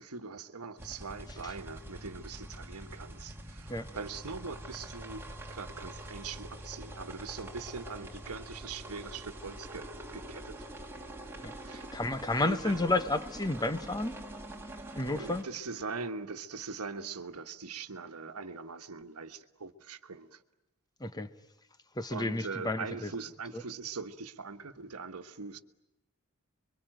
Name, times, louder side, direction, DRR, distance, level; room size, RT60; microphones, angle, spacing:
voice 1, 0.0-5.2 5.5-10.6 11.6-12.0 12.4-12.8 14.8-20.4 22.1-25.6, right 4 dB, 80° right, 1.3 m, -42 dB
sound 1, 0.8-15.4, right 1 dB, 10° right, 2.7 m, -45 dB
voice 2, 11.4-14.1 14.9-15.4 21.0-21.3 22.0-23.1, left 2 dB, 20° left, 0.9 m, -31 dB
28.5 x 23.0 x 9.1 m
head